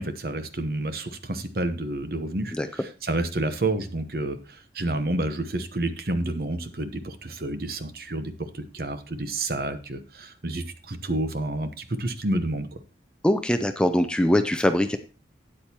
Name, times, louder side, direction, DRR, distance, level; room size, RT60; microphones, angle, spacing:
voice 1, 0.0-12.7, right 2 dB, 55° right, 9 dB, 0.9 m, -29 dB
voice 2, 13.2-15.0, left 1 dB, 5° left, 8 dB, 0.4 m, -22 dB
12.5 x 8.8 x 2.9 m, 0.33 s
head